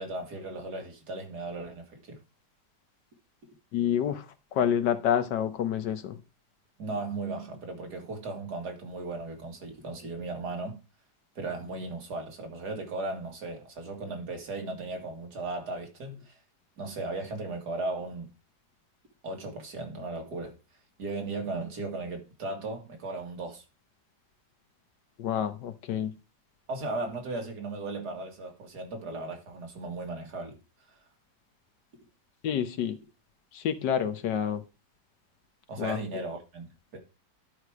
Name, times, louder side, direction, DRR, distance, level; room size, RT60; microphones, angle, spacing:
voice 1, 0.0-2.2 6.8-10.8 11.4-16.4 16.8-18.3 19.2-20.6 21.0-23.6 26.7-30.6 35.7-37.0, right 2 dB, 70° right, 2.6 m, -36 dB
voice 2, 3.7-4.2 4.5-6.2 25.2-26.2 32.4-33.0 33.5-34.6 35.8-36.0, left 9 dB, 90° left, 1.6 m, -28 dB
11.0 x 4.9 x 4.8 m
omnidirectional pair, 1.8 m